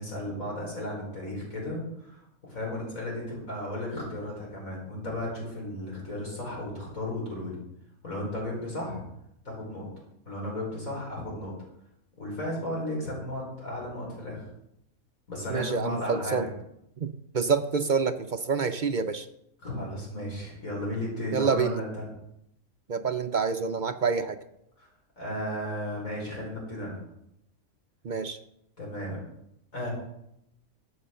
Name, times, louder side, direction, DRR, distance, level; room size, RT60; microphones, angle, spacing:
voice 1, 0.0-7.6 8.0-9.0 9.5-9.9 10.3-11.5 12.2-14.4 15.3-16.5 19.6-22.0 24.8-24.9 25.2-27.0 28.8-29.2 29.7-29.9, left 1 dB, 65° left, -3 dB, 5.5 m, -34 dB
voice 2, 15.5-16.5 17.0-19.3 21.3-21.8 22.9-24.4 28.0-28.4, right 5 dB, 60° right, 8 dB, 0.5 m, -27 dB
13.5 x 7.4 x 6.8 m, 0.79 s
omnidirectional pair, 1.6 m